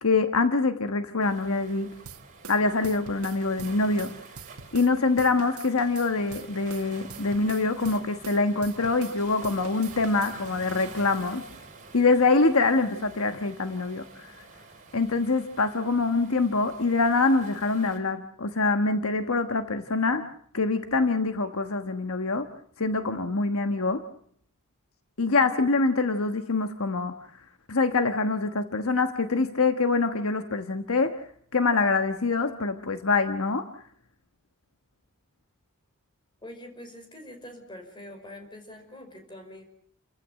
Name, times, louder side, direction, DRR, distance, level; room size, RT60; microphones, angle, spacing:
voice 1, 0.0-1.9 2.5-4.1 4.7-11.4 11.9-14.4 14.9-20.2 20.5-22.5 22.8-24.0 25.2-27.1 27.7-31.2 31.5-33.7, left 3 dB, 70° left, 8 dB, 1.3 m, -25 dB
Waves surf, 1.2-18.0, right 4 dB, 35° right, 5.6 m, -48 dB
sound 1, 2.0-4.9 5.2-9.2 9.4-10.4, right 5 dB, 85° right, 1.8 m, -44 dB
voice 2, 36.4-39.6, left 1 dB, 20° left, 5 dB, 5.4 m, -44 dB
30.0 x 15.5 x 7.5 m, 0.65 s
head